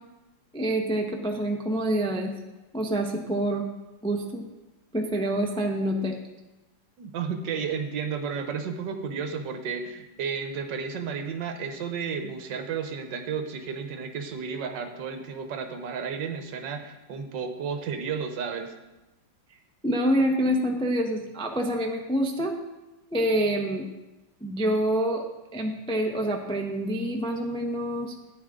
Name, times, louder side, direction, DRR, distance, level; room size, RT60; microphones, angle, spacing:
voice 1, 0.5-2.3 2.7-3.7 4.0-4.4 4.9-6.2 19.8-22.5 23.1-23.9 24.4-25.2 25.5-28.1, right 1 dB, 5° left, 1 dB, 0.5 m, -26 dB
voice 2, 7.0-18.7, right 6 dB, 70° right, 6 dB, 1.6 m, -32 dB
13.5 x 9.4 x 3.8 m, 1.0 s
omnidirectional pair, 2.1 m